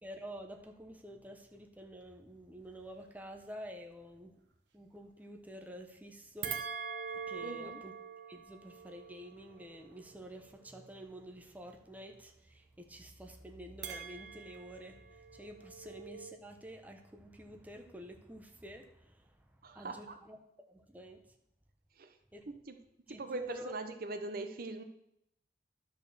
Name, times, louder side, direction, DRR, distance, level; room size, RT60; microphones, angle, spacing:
voice 1, 0.0-4.3 4.7-6.6 7.1-7.9 8.3-21.3 22.3-22.5 23.1-23.7, equal, 10° right, 3 dB, 0.7 m, -49 dB
sound 1, 6.4-10.9 13.8-16.4, right 6 dB, 80° right, 1.0 m, -44 dB
voice 2, 7.4-7.8 19.6-20.2 22.0-22.2 22.5-22.8 23.1-24.8, right 2 dB, 55° right, 8 dB, 0.7 m, -41 dB
11.0 x 4.4 x 6.9 m, 0.78 s
head